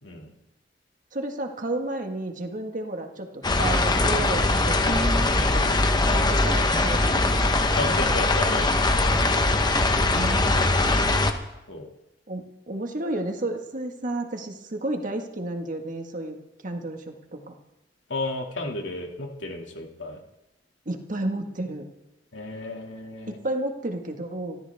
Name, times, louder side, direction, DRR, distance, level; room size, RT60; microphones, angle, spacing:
voice 1, 0.0-0.3 7.8-8.8 11.7-11.9 18.1-20.2 22.3-23.4, left 2 dB, 85° left, 2 dB, 2.4 m, -33 dB
voice 2, 1.1-5.7 6.0-7.4 10.1-11.2 12.3-16.4 16.6-17.5 20.9-21.9 23.3-24.6, right 2 dB, 45° right, 4 dB, 1.7 m, -32 dB
sound 1, 3.4-11.3, left 2 dB, 25° left, 1.1 m, -21 dB
25.5 x 13.5 x 3.6 m, 0.93 s
head